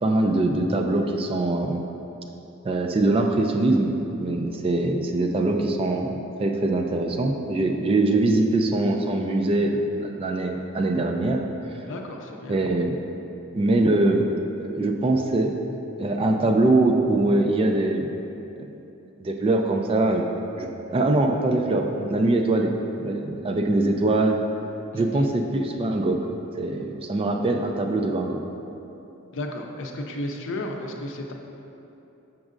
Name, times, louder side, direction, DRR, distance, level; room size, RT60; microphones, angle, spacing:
voice 1, 0.0-1.8 2.6-11.4 12.5-13.0 13.5-14.3 14.6-18.1 19.2-20.2 20.6-22.7 23.0-24.4 24.9-26.2 26.6-28.4, right 2 dB, 25° right, 3 dB, 0.3 m, -23 dB
voice 2, 11.9-12.6 24.9-25.3 29.3-31.3, left 1 dB, 60° left, 2 dB, 0.5 m, -33 dB
6.3 x 6.0 x 2.5 m, 2.9 s
head